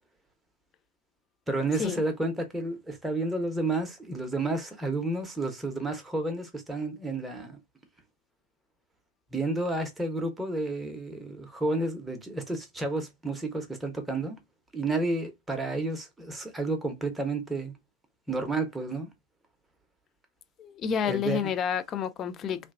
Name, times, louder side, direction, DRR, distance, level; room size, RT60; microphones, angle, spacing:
voice 1, 1.5-7.6 9.3-14.4 14.7-17.7 18.3-19.1 21.1-21.4, right 2 dB, 5° right, 1.0 m, -31 dB
voice 2, 20.6-22.7, left 7 dB, 30° left, 0.4 m, -30 dB
3.2 x 2.7 x 2.5 m
figure-of-eight pair, 90°, 0 cm